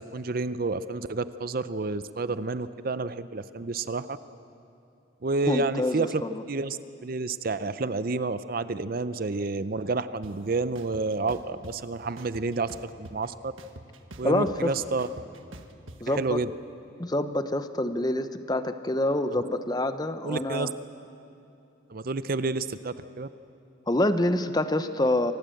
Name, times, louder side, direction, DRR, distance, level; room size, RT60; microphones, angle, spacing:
voice 1, 0.0-4.2 5.2-6.2 6.5-13.5 14.2-15.1 16.1-16.5 19.3-19.4 20.2-20.7 21.9-23.3, right 3 dB, 45° right, 13 dB, 0.5 m, -30 dB
voice 2, 5.5-6.4 14.2-14.7 16.0-16.4 17.0-20.7 23.9-25.3, left 1 dB, 20° left, 10 dB, 0.8 m, -26 dB
sound 1, 10.2-10.3 10.7-11.7 12.2-13.3 13.6-16.0, right 1 dB, 85° right, 1.5 m, -45 dB
25.5 x 19.5 x 7.8 m, 2.6 s
head